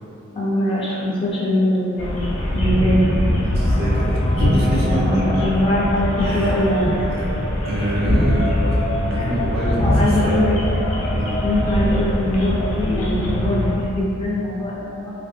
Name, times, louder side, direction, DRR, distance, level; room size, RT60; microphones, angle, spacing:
voice 1, 0.3-2.2 2.5-3.1 4.9-7.2 9.2-9.4 9.8-10.5 11.4-15.1, left 1 dB, 25° left, -7 dB, 0.4 m, -22 dB
sound 1, 2.0-13.7, left 1 dB, 80° left, 0.6 m, -21 dB
voice 2, 3.4-5.4 6.2-6.6 6.8-7.2 7.6-10.4 11.1-11.4, right 1 dB, 50° right, -7 dB, 0.7 m, -27 dB
2.8 x 2.6 x 2.4 m, 2.7 s
head